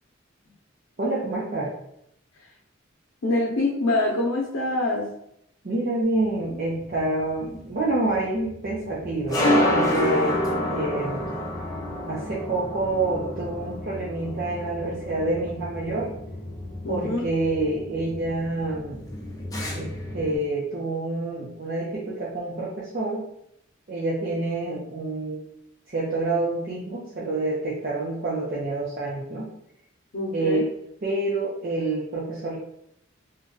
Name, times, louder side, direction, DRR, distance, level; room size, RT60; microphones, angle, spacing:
voice 1, 1.0-1.7 5.6-10.4 10.7-11.2 12.1-16.1 16.9-19.0 19.7-23.3 23.9-25.4 25.9-29.5 30.3-30.7 31.0-32.6, right 2 dB, 45° right, -7 dB, 0.6 m, -27 dB
voice 2, 3.2-5.1 16.8-17.2 30.1-30.6, left 2 dB, 90° left, -3 dB, 0.6 m, -25 dB
sound 1, 6.4-20.4, left 1 dB, 20° left, 0.6 m, -29 dB
2.6 x 2.3 x 3.8 m, 0.74 s
head